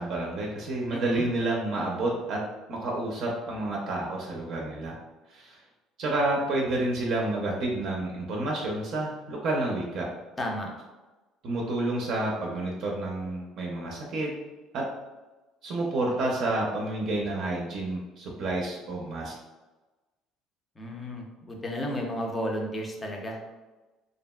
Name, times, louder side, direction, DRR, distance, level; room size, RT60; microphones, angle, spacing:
voice 1, 0.0-2.4 2.7-5.0 5.3-5.6 6.0-10.1 11.4-14.3 14.7-14.9 15.6-19.3, right 2 dB, 55° right, -2 dB, 0.4 m, -29 dB
voice 2, 0.9-1.2 10.4-10.7 20.8-23.4, equal, 15° left, 1 dB, 0.4 m, -33 dB
2.8 x 2.5 x 2.2 m, 1.2 s
cardioid pair, 150°, 0 cm